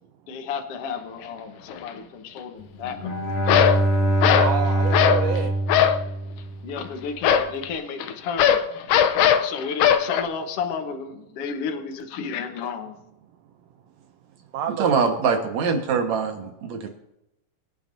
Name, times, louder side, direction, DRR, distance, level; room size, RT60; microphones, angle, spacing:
voice 1, 0.3-3.3 6.6-9.0 9.4-13.0, left 6 dB, 60° left, 5 dB, 1.9 m, -32 dB
sound 1, 1.7-1.9 3.5-3.8 4.2-4.6 4.9-5.3 5.7-6.1 7.2-10.2, left 9 dB, 85° left, 2.3 m, -19 dB
Bowed string instrument, 2.8-6.9, right 1 dB, 35° left, 2.0 m, -24 dB
voice 2, 4.4-5.5 14.5-15.1, right 8 dB, 80° right, 7 dB, 1.4 m, -28 dB
voice 3, 14.8-16.9, right 5 dB, 65° right, 4 dB, 2.6 m, -23 dB
24.0 x 9.3 x 2.7 m, 0.88 s
omnidirectional pair, 3.7 m